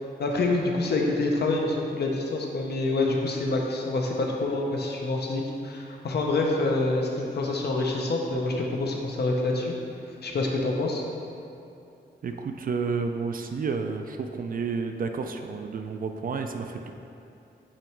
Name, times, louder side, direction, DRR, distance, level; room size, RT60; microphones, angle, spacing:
voice 1, 0.2-9.7 10.2-11.0, left 2 dB, 65° left, 0 dB, 0.8 m, -26 dB
voice 2, 12.2-16.9, right 5 dB, 50° right, 6 dB, 0.4 m, -31 dB
8.7 x 3.0 x 4.5 m, 2.7 s
wide cardioid pair, 175°, 18 cm